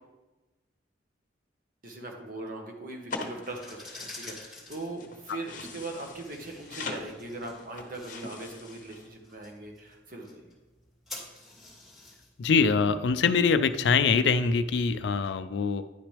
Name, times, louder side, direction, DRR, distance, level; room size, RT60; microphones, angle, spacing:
voice 1, 1.8-10.5, right 2 dB, 45° right, 1 dB, 1.3 m, -40 dB
sound 1, 3.1-9.1, left 3 dB, 45° left, 0.9 m, -42 dB
sound 2, 3.4-14.2, left 2 dB, ahead, 2.3 m, -49 dB
voice 2, 12.4-15.8, left 5 dB, 65° left, 11 dB, 0.3 m, -24 dB
10.5 x 6.0 x 3.4 m, 1.1 s
head